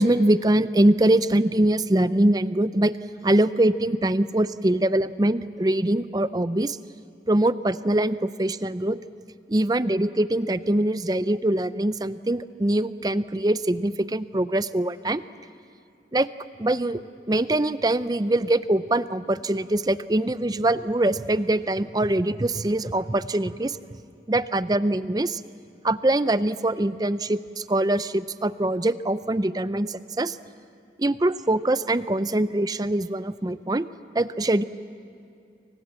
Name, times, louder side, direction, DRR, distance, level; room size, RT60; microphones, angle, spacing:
voice 1, 0.0-2.9 3.2-6.8 7.3-9.0 9.5-15.2 16.1-16.3 16.6-17.0 17.3-23.8 24.3-25.4 25.8-30.4 31.0-33.9 34.1-34.6, right 1 dB, 20° right, 14 dB, 0.5 m, -23 dB
29.5 x 24.0 x 7.6 m, 2.5 s
head